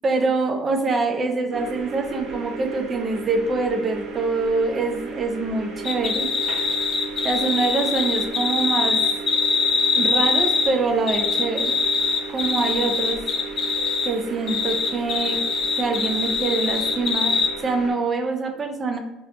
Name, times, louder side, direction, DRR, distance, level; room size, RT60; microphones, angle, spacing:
voice 1, 0.0-6.3 7.2-9.0 10.0-11.7 12.3-13.2 14.0-15.4 15.8-19.0, right 3 dB, 25° right, 4 dB, 0.4 m, -24 dB
sound 1, 1.5-17.9, right 3 dB, 50° right, 0.7 m, -35 dB
sound 2, 5.8-10.7 11.1-14.1 14.5-17.5, left 4 dB, 35° left, 0.5 m, -23 dB
2.7 x 2.1 x 3.7 m, 1.0 s
cardioid pair, 140°, 0 cm